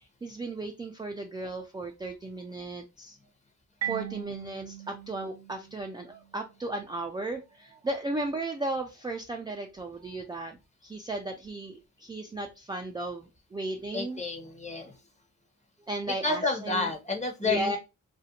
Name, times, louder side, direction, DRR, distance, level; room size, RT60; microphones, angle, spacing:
voice 1, 0.2-3.2 3.8-10.6 10.8-14.2 15.8-16.9 17.4-17.8, right 2 dB, 15° right, 2 dB, 0.3 m, -35 dB
Marimba xylophone, 3.8-6.4, right 10 dB, 55° right, 0.7 m, -39 dB
voice 2, 13.9-15.0 16.1-17.8, left 3 dB, 20° left, 2 dB, 0.8 m, -30 dB
2.5 x 2.1 x 2.7 m, 0.27 s
cardioid pair, 65°, 32 cm